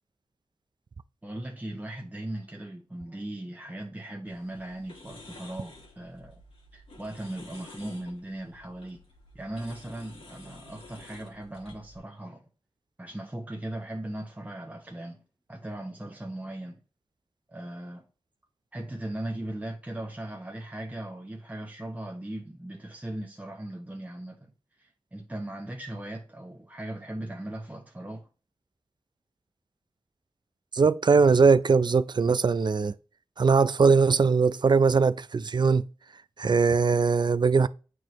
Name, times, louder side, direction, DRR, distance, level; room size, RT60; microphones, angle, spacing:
voice 1, 1.2-6.4 6.7-9.0 9.3-12.4 13.0-15.2 15.5-16.8 17.5-18.0 18.7-24.5 24.8-28.3, right 1 dB, 15° right, 0.9 m, -38 dB
sound 1, 4.3-12.0, left 2 dB, 80° left, 2.0 m, -51 dB
voice 2, 30.7-32.9 33.4-35.8 36.4-37.7, right 5 dB, 50° right, 0.4 m, -21 dB
8.7 x 4.7 x 3.0 m
cardioid pair, 50°, 10 cm